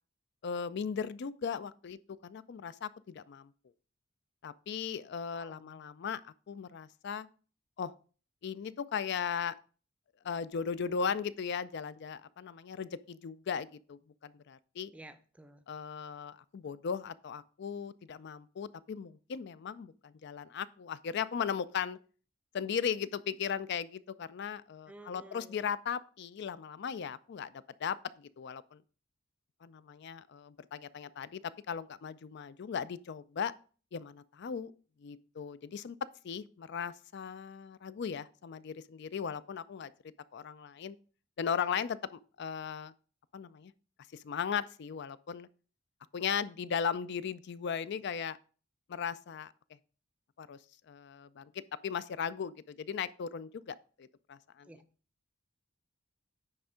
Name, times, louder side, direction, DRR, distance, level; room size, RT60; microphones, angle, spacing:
voice 1, 0.4-3.5 4.4-7.3 7.8-7.9 8.4-9.5 10.2-14.9 15.7-22.0 22.5-28.8 29.6-33.5 33.9-34.7 35.0-36.0 36.2-39.9 40.3-41.0 41.4-42.9 43.3-43.7 44.1-45.5 46.1-48.4 48.9-49.5 50.4-50.6 50.9-51.5 51.8-54.7, left 7 dB, 55° left, 0.4 m, -37 dB
voice 2, 5.3-5.8 14.9-15.6 24.9-25.6 54.6-54.9, right 1 dB, 5° right, 0.5 m, -53 dB
9.7 x 3.4 x 5.0 m
head